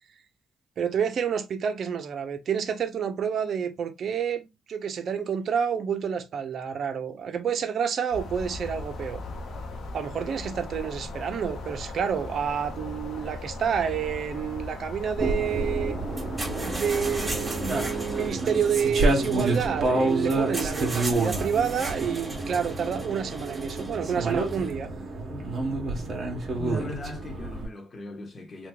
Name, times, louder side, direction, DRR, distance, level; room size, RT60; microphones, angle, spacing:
voice 1, 0.8-9.2 9.9-16.0 16.6-24.9, right 7 dB, 60° right, 0.6 m, -29 dB
sound 1, 8.1-18.3, left 2 dB, 60° left, 0.8 m, -38 dB
sound 2, 15.2-27.7, right 2 dB, 45° right, 1.0 m, -29 dB
sound 3, 16.1-24.7, right 2 dB, 10° right, 1.3 m, -38 dB
voice 2, 26.6-28.7, left 2 dB, 30° left, 1.0 m, -38 dB
2.9 x 2.2 x 3.4 m
cardioid pair, 90°, 0 cm